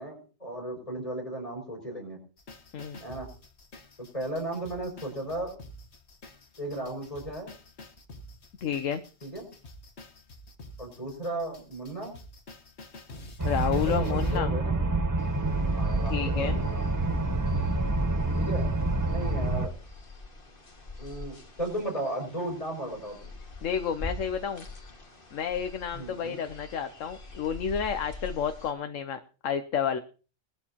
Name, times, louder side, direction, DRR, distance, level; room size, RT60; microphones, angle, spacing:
voice 1, 0.0-2.2 3.0-3.3 4.0-5.5 6.6-7.5 9.2-9.5 10.8-12.2 13.8-14.8 15.7-16.8 18.3-18.7 19.1-19.7 21.0-23.3 25.9-26.4, right 1 dB, 30° left, 1 dB, 6.1 m, -35 dB
sound 1, 2.4-14.4, left 1 dB, 60° left, 1.7 m, -49 dB
voice 2, 8.6-9.0 13.4-14.5 16.1-16.6 23.6-24.7 25.3-30.0, left 7 dB, 80° left, 8 dB, 1.2 m, -30 dB
sound 2, 13.4-19.7, right 2 dB, 25° right, 0.5 m, -27 dB
sound 3, 15.2-28.7, left 2 dB, 45° left, 2.2 m, -45 dB
20.5 x 12.5 x 2.9 m, 0.36 s
omnidirectional pair, 1.3 m